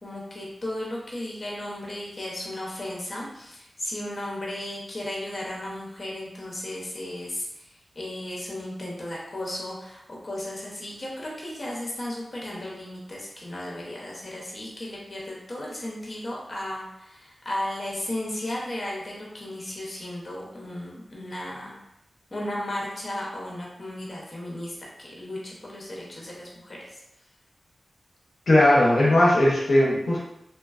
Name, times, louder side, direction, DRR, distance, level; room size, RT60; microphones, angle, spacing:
voice 1, 0.0-21.8 22.3-27.0, left 1 dB, 40° left, -4 dB, 0.7 m, -35 dB
voice 2, 28.5-30.2, left 1 dB, 70° left, -6 dB, 0.6 m, -18 dB
2.7 x 2.2 x 2.4 m, 0.85 s
wide cardioid pair, 80°, 0 cm